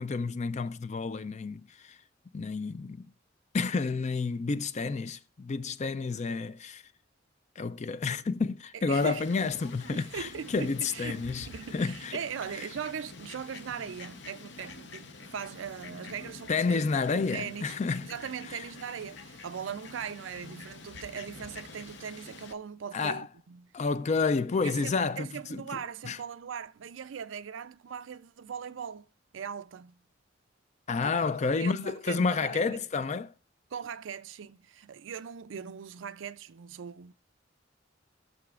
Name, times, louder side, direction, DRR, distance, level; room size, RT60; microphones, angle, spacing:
voice 1, 0.0-2.0 2.3-3.1 3.5-6.8 7.6-11.5 11.7-12.2 16.5-18.1 22.9-23.3 23.7-25.6 26.0-26.2 30.9-33.3, left 4 dB, 40° left, 0.4 m, -30 dB
voice 2, 8.7-9.6 9.9-16.8 17.1-23.7 24.6-29.1 29.3-30.0 31.0-31.2 31.6-32.8 33.7-37.1, right 7 dB, 85° right, 0.4 m, -40 dB
Fowl, 8.9-22.5, left 3 dB, 70° left, 0.9 m, -47 dB
18.5 x 6.8 x 2.4 m
head